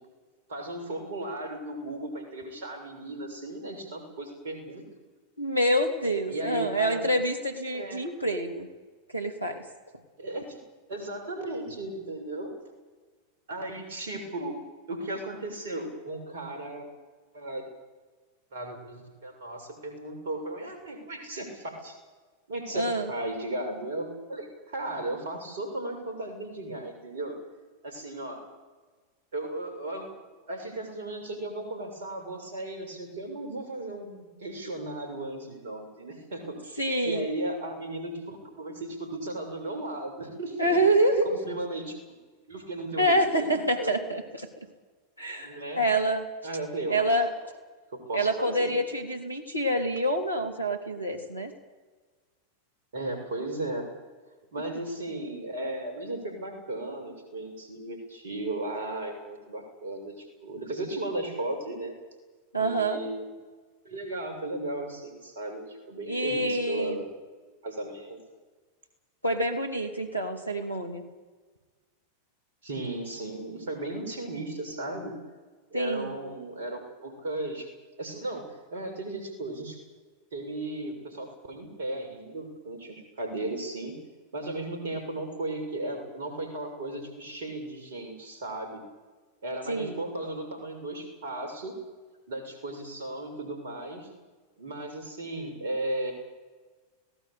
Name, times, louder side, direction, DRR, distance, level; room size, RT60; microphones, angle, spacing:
voice 1, 0.5-4.8 6.3-7.1 7.7-8.0 10.2-10.6 10.9-12.5 13.5-14.6 14.9-16.9 17.3-17.6 18.5-22.0 22.5-27.3 27.8-28.4 29.3-30.1 30.5-40.8 41.2-42.0 42.5-44.0 45.4-45.8 46.4-47.2 47.9-48.7 52.9-53.9 54.5-61.9 62.6-63.3 63.8-67.2 67.6-68.2 72.6-75.1 75.7-77.7 78.0-78.4 78.7-79.8 80.3-83.9 84.3-88.8 89.4-91.8 92.3-94.1 94.6-96.1, right 2 dB, 60° right, 4 dB, 7.0 m, -35 dB
voice 2, 5.4-8.7 9.1-9.6 22.7-23.1 36.8-37.2 40.6-41.3 43.0-44.5 45.2-46.3 46.9-47.3 48.1-51.5 62.5-63.0 66.1-67.0 69.2-71.0 75.7-76.2 89.7-90.0, right 1 dB, 85° left, 6 dB, 3.6 m, -27 dB
25.5 x 18.5 x 8.6 m, 1.3 s
figure-of-eight pair, 90°, 0 cm